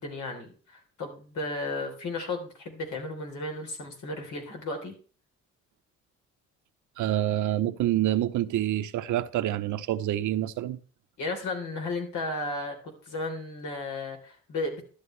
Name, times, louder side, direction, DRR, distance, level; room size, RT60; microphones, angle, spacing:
voice 1, 0.0-4.9 11.2-12.8 13.0-14.8, left 2 dB, 75° left, 3.8 m, -34 dB
voice 2, 7.0-10.8, right 13 dB, 75° right, 0.8 m, -27 dB
13.0 x 10.5 x 3.3 m
cardioid pair, 90°, 30 cm